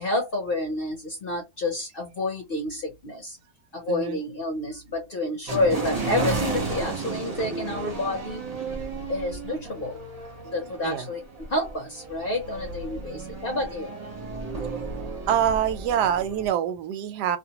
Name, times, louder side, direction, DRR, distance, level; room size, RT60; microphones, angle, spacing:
voice 1, 0.0-3.4 3.7-8.4 9.1-10.0 10.4-13.9, left 2 dB, 50° left, 0.7 m, -29 dB
voice 2, 3.9-4.2 10.8-11.1 15.3-17.4, right 9 dB, 85° right, 1.2 m, -25 dB
sound 1, 5.5-16.5, right 3 dB, 35° right, 0.7 m, -33 dB
2.6 x 2.1 x 2.8 m
omnidirectional pair, 1.7 m